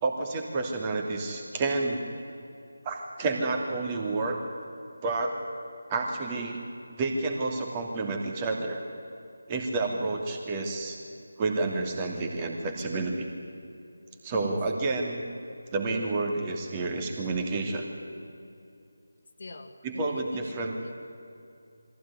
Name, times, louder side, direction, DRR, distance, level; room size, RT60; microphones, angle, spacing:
voice 1, 0.0-2.0 2.8-4.4 5.0-5.4 5.9-6.6 7.0-8.8 9.5-11.0 11.4-13.3 14.2-15.2 15.7-17.9 19.8-20.7, right 3 dB, 20° right, 2 dB, 2.7 m, -29 dB
voice 2, 19.4-20.9, left 3 dB, 50° left, 7 dB, 2.1 m, -45 dB
23.0 x 16.0 x 9.8 m, 2.6 s
figure-of-eight pair, 160°, 0 cm